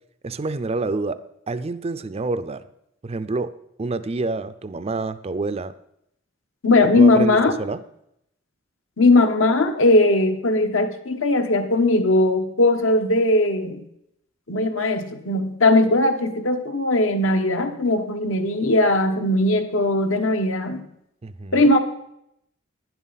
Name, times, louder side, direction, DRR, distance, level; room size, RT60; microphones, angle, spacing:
voice 1, 0.2-2.7 3.0-5.7 6.8-7.8 21.2-21.7, right 3 dB, 30° right, 13 dB, 0.4 m, -28 dB
voice 2, 6.6-7.5 9.0-13.8 14.5-20.8 21.5-21.8, left 2 dB, 70° left, 6 dB, 1.1 m, -19 dB
11.0 x 10.5 x 4.1 m, 0.77 s
head